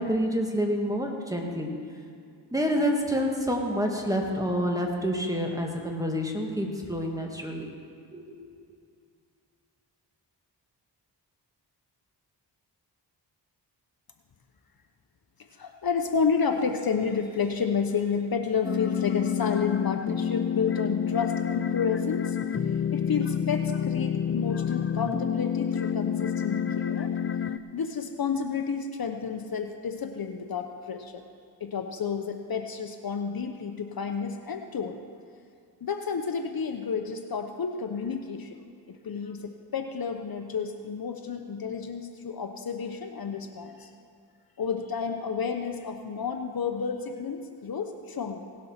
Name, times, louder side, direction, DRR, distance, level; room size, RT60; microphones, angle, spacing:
voice 1, 0.0-1.7 2.5-7.7 8.1-8.4, equal, 10° right, 1 dB, 2.1 m, -28 dB
voice 2, 15.5-22.4 22.7-27.1 27.7-31.2 31.6-35.0 35.8-38.6 38.9-43.9 44.6-48.4, left 6 dB, 55° left, 5 dB, 0.9 m, -31 dB
sound 1, 18.6-27.6, left 8 dB, 30° left, 0.5 m, -28 dB
18.0 x 7.4 x 5.8 m, 2.4 s
cardioid pair, 65°, 44 cm